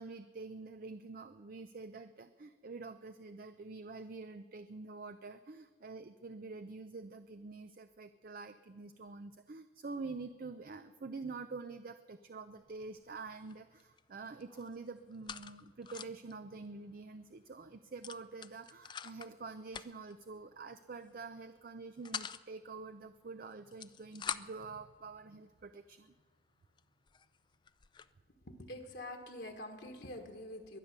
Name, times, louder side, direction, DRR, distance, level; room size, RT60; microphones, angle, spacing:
voice 1, 0.0-26.1, right 3 dB, 50° right, 10 dB, 0.5 m, -47 dB
sound 1, 12.6-12.9 13.2-14.0 14.3-16.3 16.7-16.8 17.1-17.3 18.0-19.3 19.7-20.2 20.9-21.2 21.6-22.4 23.5-24.7 25.4-25.5 26.1-26.2 26.8-26.9 27.1-28.1, left 7 dB, 25° left, 0.4 m, -45 dB
voice 2, 28.5-30.8, left 1 dB, 65° left, 3 dB, 1.5 m, -46 dB
22.5 x 9.6 x 6.7 m, 1.4 s
head